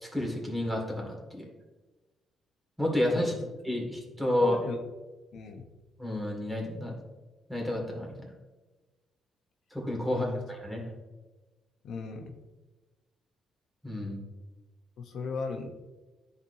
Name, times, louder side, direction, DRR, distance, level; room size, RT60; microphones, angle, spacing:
voice 1, 0.0-1.5 2.8-3.3 3.6-4.6 6.0-6.9 7.5-8.3 9.7-10.8 13.8-14.2, left 1 dB, 5° right, -1 dB, 2.0 m, -30 dB
voice 2, 3.1-3.5 4.4-4.8 5.3-5.7 10.1-10.4 11.8-12.4 15.0-15.7, left 4 dB, 70° left, 3 dB, 0.7 m, -37 dB
10.0 x 4.3 x 2.6 m, 1.2 s
cardioid pair, 90°, 0 cm